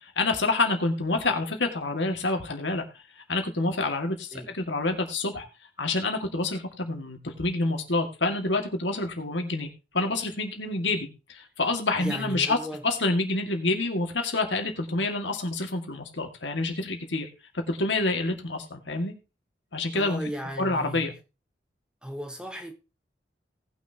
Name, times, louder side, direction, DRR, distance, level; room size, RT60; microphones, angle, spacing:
voice 1, 0.0-2.8 3.2-5.5 5.8-12.6 12.8-17.3 17.7-19.1 19.7-20.2 20.6-21.1, left 2 dB, 90° left, 2.1 m, -27 dB
voice 2, 12.0-12.8 19.9-21.1 22.0-22.7, equal, 5° right, 1.2 m, -36 dB
18.5 x 6.3 x 2.9 m
head